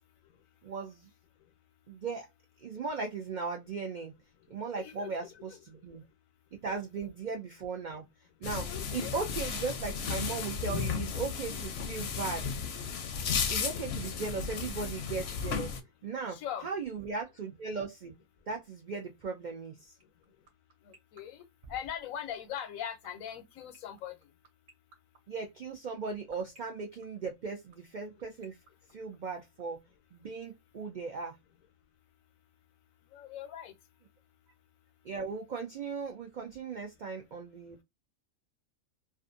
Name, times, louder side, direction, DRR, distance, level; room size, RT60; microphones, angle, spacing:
voice 1, 0.6-1.1 1.9-2.3 2.6-4.1 4.5-6.0 6.6-8.0 8.4-12.5 13.5-15.8 16.0-18.1 18.5-19.9 25.3-28.6 28.9-29.8 30.1-31.4 35.0-37.8, right 4 dB, 80° right, 0.4 m, -37 dB
voice 2, 4.8-5.6 6.7-6.8 8.7-9.1 16.3-16.7 20.8-21.4 21.7-24.2 33.1-33.7, left 10 dB, 90° left, 1.0 m, -41 dB
sound 1, 8.4-15.8, left 6 dB, 65° left, 0.7 m, -34 dB
sound 2, 20.0-29.6, right 3 dB, 55° right, 0.9 m, -57 dB
2.5 x 2.4 x 2.5 m
omnidirectional pair, 1.4 m